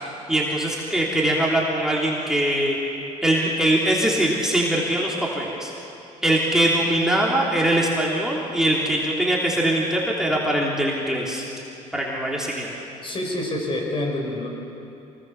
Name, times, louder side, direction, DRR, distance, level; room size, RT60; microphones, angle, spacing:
voice 1, 0.0-2.8 3.2-5.7 6.2-11.4 11.9-12.7, right 1 dB, 5° right, -4 dB, 3.2 m, -22 dB
voice 2, 13.0-14.5, left 1 dB, 40° left, 0 dB, 5.8 m, -27 dB
25.0 x 18.5 x 7.1 m, 2.8 s
cardioid pair, 95°, 14 cm